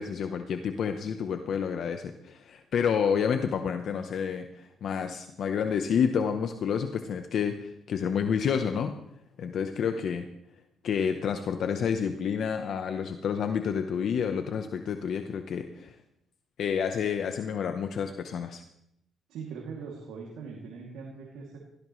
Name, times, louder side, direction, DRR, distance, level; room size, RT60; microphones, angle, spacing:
voice 1, 0.0-9.0 9.4-10.3 10.8-16.0 16.6-18.6, left 7 dB, 65° left, 7 dB, 0.9 m, -29 dB
voice 2, 19.3-21.6, right 5 dB, 90° right, -2 dB, 2.7 m, -41 dB
18.0 x 15.0 x 3.2 m, 0.80 s
cardioid pair, 90°, 0 cm